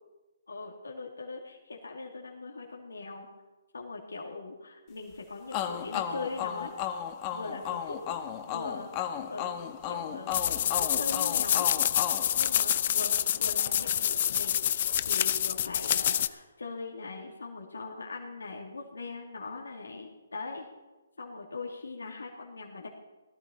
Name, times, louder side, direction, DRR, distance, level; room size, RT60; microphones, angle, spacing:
voice 1, 0.5-3.3 3.7-6.7 7.3-8.0 8.5-9.5 9.9-11.7 12.4-20.7 21.2-22.9, left 3 dB, 90° left, -1 dB, 2.5 m, -41 dB
sound 1, 5.5-13.1, left 9 dB, 30° left, 1.2 m, -35 dB
sound 2, 10.3-16.3, left 10 dB, 45° left, 0.6 m, -27 dB
18.0 x 13.0 x 4.3 m, 1.1 s
hypercardioid pair, 150°, 0 cm